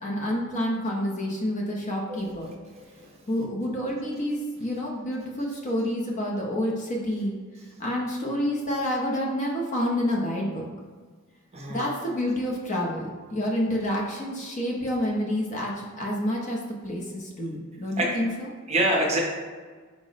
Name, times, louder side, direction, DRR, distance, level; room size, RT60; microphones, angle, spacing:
voice 1, 0.0-2.5 3.3-7.4 7.8-10.7 11.7-18.5, equal, 35° left, -2 dB, 0.6 m, -28 dB
voice 2, 2.7-3.1 11.5-11.9 18.0-18.2 18.7-19.2, right 1 dB, 30° right, 0 dB, 0.6 m, -26 dB
4.7 x 2.0 x 4.0 m, 1.5 s
head